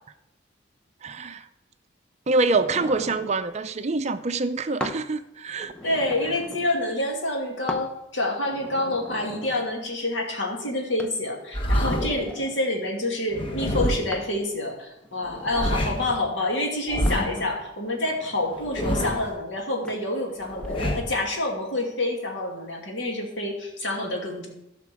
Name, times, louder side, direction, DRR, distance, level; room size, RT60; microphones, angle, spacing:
voice 1, 1.0-1.4 2.3-5.7, right 3 dB, 35° right, 10 dB, 0.5 m, -25 dB
sound 1, 2.5-3.3 4.8-5.1 5.5-6.8 7.7-7.9 8.4-9.7 11.0-11.2 11.8-12.6 14.1-14.4 15.0-16.0 17.1-17.3 17.9-18.7 19.8-20.1 20.5-21.0, left 1 dB, 5° left, 0.7 m, -39 dB
voice 2, 5.8-24.5, left 1 dB, 70° left, 0 dB, 2.4 m, -28 dB
sound 2, 11.5-12.3 13.3-14.2 15.3-16.1 16.9-17.5 18.5-19.3 20.4-21.2, equal, 30° left, 1.0 m, -27 dB
15.0 x 5.9 x 4.8 m, 0.90 s
head